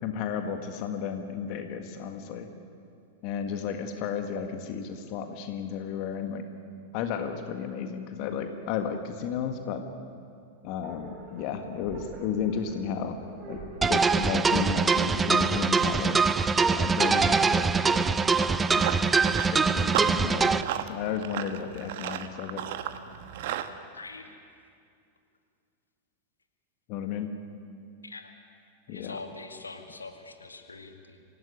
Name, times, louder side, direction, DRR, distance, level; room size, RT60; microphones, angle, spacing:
voice 1, 0.0-2.5 3.2-6.4 6.9-9.8 10.6-13.2 13.5-16.4 16.7-18.1 18.7-18.9 19.5-22.6 26.9-27.3 28.9-29.2, left 7 dB, 45° left, 6 dB, 1.8 m, -33 dB
sound 1, 10.8-18.0, right 2 dB, 35° right, 7.2 m, -45 dB
sound 2, 13.8-20.6, right 4 dB, 15° right, 0.7 m, -23 dB
Run, 18.4-23.7, right 11 dB, 50° right, 1.3 m, -35 dB
voice 2, 23.9-24.3 28.0-28.3 28.9-31.2, left 3 dB, 80° left, 4 dB, 2.2 m, -43 dB
26.0 x 17.0 x 9.7 m, 2.4 s
figure-of-eight pair, 90°, 0 cm